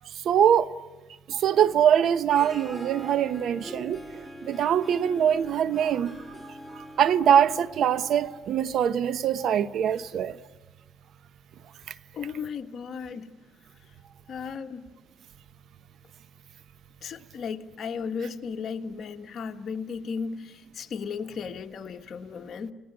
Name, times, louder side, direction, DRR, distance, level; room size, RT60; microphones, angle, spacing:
voice 1, 0.2-0.7 1.3-6.2 6.7-10.4, right 9 dB, 70° right, 1.0 m, -23 dB
Harp, 2.1-9.2, equal, 5° right, 2.6 m, -44 dB
voice 2, 12.1-13.3 14.3-14.9 17.0-22.7, left 6 dB, 60° left, 1.7 m, -35 dB
29.0 x 18.5 x 9.0 m
cardioid pair, 90°, 0 cm